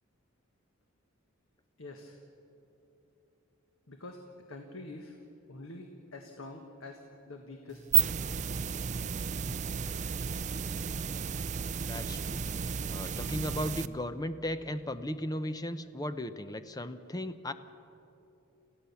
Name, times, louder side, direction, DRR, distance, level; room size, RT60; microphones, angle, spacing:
voice 1, 1.8-2.2 3.9-4.2 4.5-5.2 5.5-8.2, left 2 dB, 80° left, 3 dB, 1.5 m, -46 dB
sound 1, 7.7-13.9, right 8 dB, 35° right, 0.4 m, -32 dB
voice 2, 11.8-12.4 12.9-17.5, equal, 20° left, 11 dB, 0.7 m, -36 dB
27.5 x 15.5 x 7.0 m, 3.0 s
head